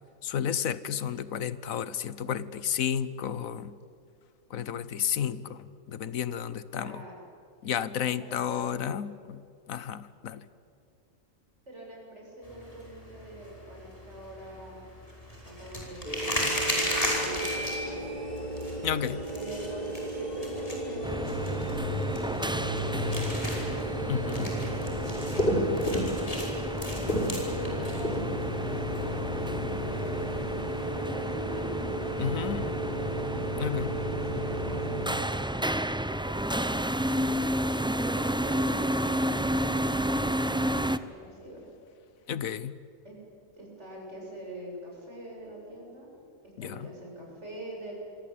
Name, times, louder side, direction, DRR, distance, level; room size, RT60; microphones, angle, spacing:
voice 1, 0.2-3.8 4.5-7.0 7.6-9.4 9.7-10.5 18.8-19.2 24.1-24.5 32.2-32.7 33.6-34.0 42.3-42.8 46.6-46.9, left 9 dB, 80° left, 16 dB, 1.3 m, -32 dB
voice 2, 6.7-7.2 8.2-8.9 11.7-14.9 15.4-18.2 19.3-22.4 22.8-23.9 24.4-25.1 26.8-28.2 28.5-29.3 29.6-30.3 30.7-31.8 32.3-33.2 33.6-37.6 37.9-41.7 43.0-43.1 43.5-46.2 46.4-47.9, equal, 55° right, -2 dB, 7.7 m, -44 dB
sound 1, 12.4-30.9, equal, 25° left, 5.7 m, -38 dB
sound 2, 16.0-35.1, equal, 45° left, 3.7 m, -33 dB
sound 3, 21.0-41.0, right 1 dB, 5° right, 0.4 m, -31 dB
27.0 x 24.0 x 8.5 m, 2.4 s
omnidirectional pair, 1.4 m